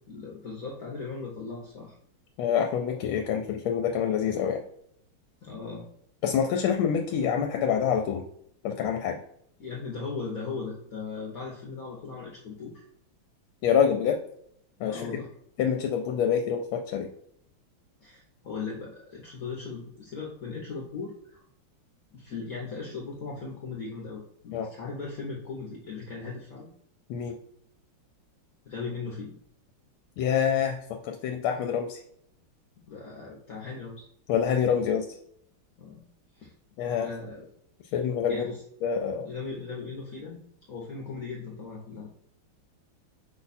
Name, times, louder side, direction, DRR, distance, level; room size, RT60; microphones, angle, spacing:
voice 1, 0.1-1.9 5.4-5.9 9.6-12.8 14.9-15.3 18.0-21.4 22.1-26.7 28.6-29.4 32.8-34.0 35.8-36.0 36.4-36.5 36.8-37.5 38.3-38.6 39.2-40.4 40.7-42.2, left 4 dB, 60° left, -3 dB, 1.0 m, -38 dB
voice 2, 2.4-4.6 6.2-8.3 8.6-9.2 13.6-14.2 14.8-15.2 15.6-17.1 24.5-24.7 27.1-27.3 30.2-32.0 34.3-35.1 36.8-37.1 37.9-38.4 38.8-39.3, left 7 dB, 75° left, 4 dB, 1.4 m, -26 dB
5.5 x 2.3 x 4.1 m, 0.69 s
omnidirectional pair, 2.4 m